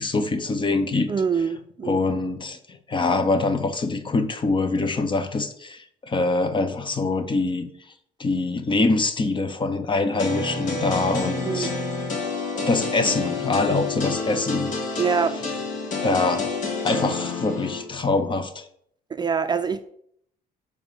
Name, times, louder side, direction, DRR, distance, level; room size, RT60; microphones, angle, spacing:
voice 1, 0.0-1.1 1.8-2.6 2.9-7.7 8.2-11.7 12.6-15.0 16.0-16.5 16.8-18.7, left 3 dB, 30° left, 9 dB, 1.1 m, -24 dB
voice 2, 1.1-2.0 11.5-11.7 15.0-15.4 19.1-19.8, right 6 dB, 25° right, 9 dB, 0.6 m, -24 dB
sound 1, 10.2-17.8, left 3 dB, 50° left, 3.4 m, -29 dB
7.2 x 4.9 x 7.1 m, 0.66 s
cardioid pair, 110°, 17 cm